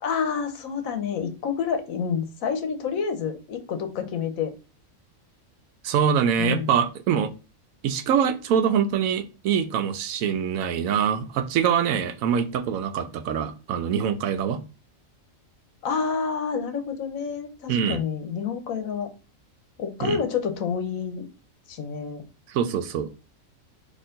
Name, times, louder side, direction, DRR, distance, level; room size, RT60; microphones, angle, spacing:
voice 1, 0.0-4.5 6.4-6.8 15.8-19.1 19.8-21.3 21.7-22.2, left 6 dB, 80° left, 7 dB, 1.2 m, -28 dB
voice 2, 5.8-7.3 7.8-14.6 17.7-18.0 20.0-20.2 22.5-23.1, right 8 dB, 90° right, 10 dB, 1.0 m, -24 dB
4.4 x 3.0 x 3.7 m, 0.32 s
omnidirectional pair, 1.4 m